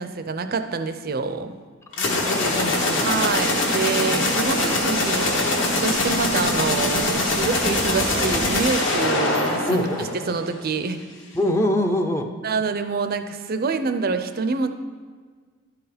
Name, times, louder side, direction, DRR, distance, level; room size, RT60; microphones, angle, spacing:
voice 1, 0.0-1.5 3.0-9.9 10.3-11.0 12.4-14.7, right 4 dB, 45° right, 8 dB, 0.5 m, -26 dB
sound 1, 1.9-10.6, left 2 dB, 60° left, 1.4 m, -23 dB
voice 2, 1.9-3.1 4.1-4.4 5.9-6.0 9.7-10.1 11.3-12.3, left 1 dB, 15° left, 5 dB, 0.5 m, -25 dB
11.5 x 4.7 x 5.1 m, 1.6 s
head